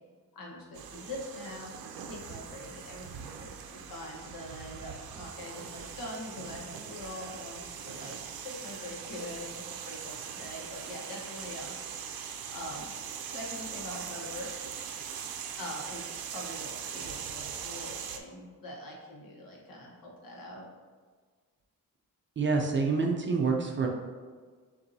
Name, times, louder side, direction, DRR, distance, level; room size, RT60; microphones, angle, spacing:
voice 1, 0.3-1.7 2.0-8.2 8.4-11.7 12.5-12.9 13.3-14.5 15.6-20.6, left 1 dB, 75° left, -3 dB, 1.1 m, -43 dB
sound 1, 0.7-18.2, right 7 dB, 85° right, 0.5 m, -41 dB
voice 2, 22.4-23.9, right 4 dB, 35° right, 1 dB, 0.4 m, -27 dB
6.8 x 2.7 x 2.7 m, 1.6 s
wide cardioid pair, 175°, 35 cm